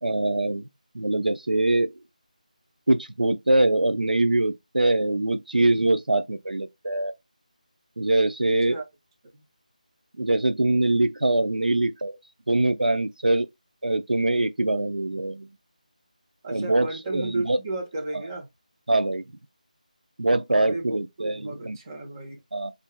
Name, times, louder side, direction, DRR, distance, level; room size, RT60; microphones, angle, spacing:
voice 1, 0.0-0.7 0.9-1.9 2.9-7.1 8.0-8.8 10.2-12.2 12.5-13.5 13.8-15.5 16.5-17.6 18.9-19.2 20.2-21.8 22.5-22.7, right 2 dB, 85° right, 0.5 m, -23 dB
voice 2, 16.4-18.5 20.5-22.4, right 2 dB, 25° right, 1.3 m, -33 dB
5.2 x 2.6 x 2.2 m
figure-of-eight pair, 165°, 4 cm